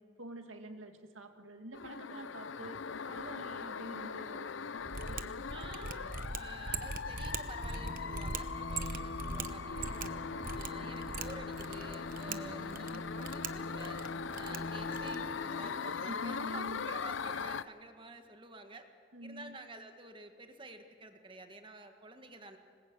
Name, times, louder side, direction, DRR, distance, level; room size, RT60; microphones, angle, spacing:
voice 1, 0.2-5.8 12.3-13.1 16.1-16.9 19.1-19.6, right 1 dB, 85° right, 5 dB, 2.3 m, -47 dB
sound 1, 1.7-17.6, left 6 dB, 75° left, 0.6 m, -41 dB
Mechanisms, 4.8-15.3, right 4 dB, 45° right, 1.0 m, -42 dB
voice 2, 5.5-10.1 10.5-14.1 14.4-18.9 19.2-22.6, right 2 dB, 25° right, 6 dB, 1.7 m, -51 dB
Bowed string instrument, 7.5-16.1, left 2 dB, 50° left, 1.2 m, -44 dB
26.0 x 21.0 x 8.2 m, 2.2 s
head